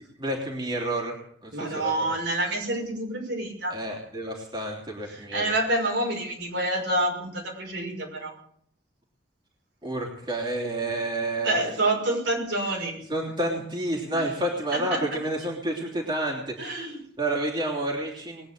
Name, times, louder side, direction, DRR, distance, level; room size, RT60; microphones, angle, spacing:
voice 1, 0.2-1.2 1.4-2.1 3.7-5.5 9.8-11.6 13.1-16.7 17.2-18.5, right 1 dB, 25° right, -1 dB, 3.0 m, -30 dB
voice 2, 1.5-3.8 5.1-8.3 11.4-13.0 14.1-14.2 14.7-15.0 16.6-17.0, right 1 dB, 75° right, 0 dB, 5.9 m, -27 dB
20.5 x 9.6 x 6.7 m, 0.67 s
head